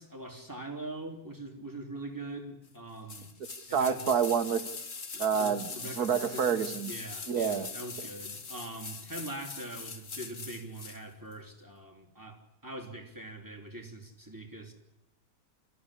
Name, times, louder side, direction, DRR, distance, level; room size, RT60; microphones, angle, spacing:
voice 1, 0.0-3.3 3.7-4.0 5.1-14.7, right 2 dB, 10° right, 3 dB, 3.1 m, -43 dB
sound 1, 3.1-11.0 11.3-11.4, left 4 dB, 55° left, 2.1 m, -42 dB
voice 2, 3.7-4.6 5.2-5.7 6.0-6.9 7.3-7.7, right 7 dB, 80° right, 9 dB, 1.7 m, -28 dB
28.5 x 15.0 x 10.0 m, 0.94 s
omnidirectional pair, 1.6 m